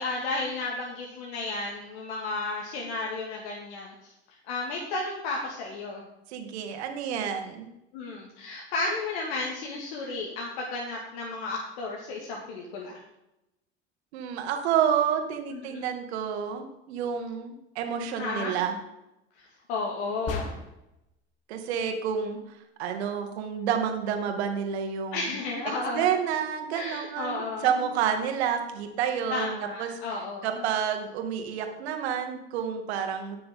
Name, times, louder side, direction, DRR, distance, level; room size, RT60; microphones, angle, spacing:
voice 1, 0.0-4.1 4.4-6.0 7.9-13.0 15.5-15.8 18.2-18.5 19.4-20.5 25.1-26.1 26.7-27.8 29.3-30.6, left 3 dB, 70° left, -1 dB, 2.2 m, -33 dB
voice 2, 6.3-7.7 14.1-18.8 21.5-22.4 22.8-25.2 25.9-29.5 29.8-29.9 30.4-33.4, right 8 dB, 75° right, 5 dB, 2.0 m, -29 dB
sound 1, 20.3-21.0, left 4 dB, 45° left, 2.1 m, -35 dB
18.0 x 6.8 x 3.8 m, 0.87 s
hypercardioid pair, 75°, 33 cm